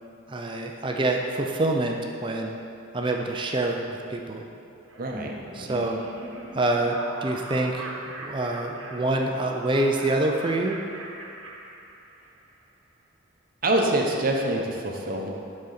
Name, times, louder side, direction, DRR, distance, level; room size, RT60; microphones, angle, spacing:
voice 1, 0.3-2.6 2.9-4.4 5.6-6.0 6.5-10.8, right 2 dB, 25° right, 2 dB, 0.4 m, -26 dB
Laughter, 4.9-12.4, right 2 dB, 75° right, 1.0 m, -40 dB
voice 2, 5.0-5.8 13.6-15.3, right 1 dB, 45° right, 0 dB, 0.8 m, -26 dB
11.5 x 4.2 x 4.0 m, 2.6 s
head